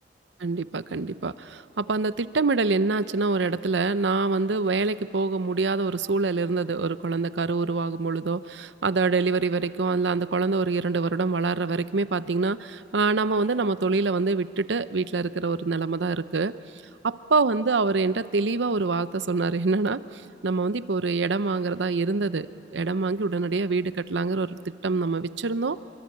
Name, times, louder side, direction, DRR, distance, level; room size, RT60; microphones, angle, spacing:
voice 1, 0.4-16.5 17.0-25.8, right 3 dB, 75° right, 14 dB, 0.7 m, -25 dB
26.0 x 24.0 x 8.5 m, 2.6 s
head